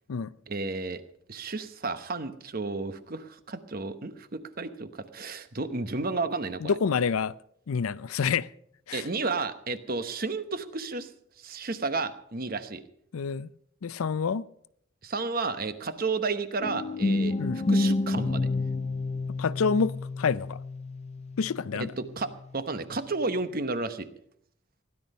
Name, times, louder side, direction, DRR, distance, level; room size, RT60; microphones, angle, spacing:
voice 1, 0.5-1.0 1.3-6.7 8.9-11.1 11.4-12.8 15.0-17.4 17.7-18.5 21.7-24.1, right 3 dB, 45° right, 0.9 m, -32 dB
voice 2, 6.6-7.3 7.7-8.5 8.9-9.0 13.1-13.5 13.8-14.4 17.4-17.7 19.4-20.6 21.4-21.9, left 5 dB, 85° left, 0.5 m, -27 dB
sound 1, 16.6-22.5, left 2 dB, 30° left, 0.4 m, -30 dB
16.5 x 11.0 x 5.4 m
head